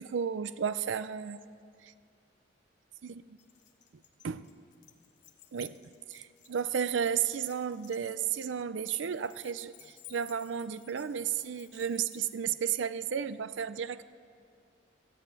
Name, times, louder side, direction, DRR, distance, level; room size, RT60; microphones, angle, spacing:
voice 1, 0.0-1.4 1.8-1.9 3.0-3.2 4.2-4.5 5.5-5.8 6.1-14.0, right 7 dB, 80° right, 14 dB, 0.5 m, -33 dB
Keys jangling, 3.4-12.6, left 11 dB, 65° left, 1.0 m, -58 dB
14.5 x 8.2 x 9.0 m, 2.3 s
head